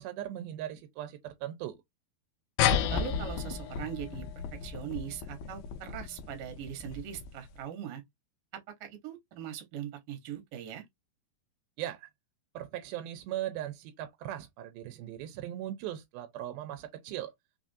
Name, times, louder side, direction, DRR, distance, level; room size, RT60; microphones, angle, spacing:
voice 1, 0.0-1.8 11.8-12.1 12.5-17.3, right 12 dB, 90° right, 2.5 m, -39 dB
sound 1, 2.6-7.5, left 8 dB, 85° left, 2.3 m, -33 dB
voice 2, 2.9-4.3 4.6-8.0 8.5-10.8, right 10 dB, 70° right, 2.5 m, -41 dB
5.7 x 2.4 x 2.6 m
omnidirectional pair, 4.2 m